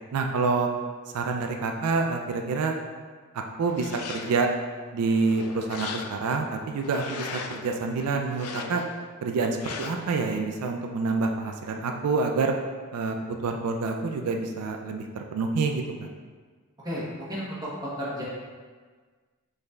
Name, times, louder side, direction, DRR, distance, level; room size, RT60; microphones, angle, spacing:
voice 1, 0.1-0.7 1.1-2.8 3.6-4.5 4.9-8.8 9.2-12.5 12.9-16.1, right 4 dB, 90° right, 3 dB, 0.4 m, -27 dB
sound 1, 3.6-4.5 5.0-6.4 6.8-7.7 8.3-9.1 9.6-10.2, left 5 dB, 80° left, 0.4 m, -38 dB
voice 2, 16.8-17.7 18.0-18.2, equal, 15° right, -7 dB, 1.0 m, -33 dB
5.3 x 3.9 x 2.3 m, 1.5 s
head